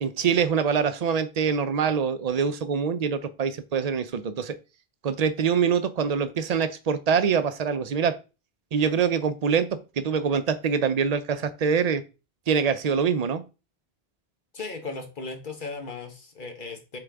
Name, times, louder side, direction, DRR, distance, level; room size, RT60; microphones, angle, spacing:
voice 1, 0.0-4.5 5.0-8.1 8.7-9.7 10.0-12.0 12.5-13.4, right 6 dB, 45° right, 11 dB, 0.6 m, -24 dB
voice 2, 14.5-17.0, left 3 dB, 50° left, 5 dB, 1.3 m, -36 dB
7.1 x 3.9 x 3.5 m, 0.31 s
omnidirectional pair, 1.1 m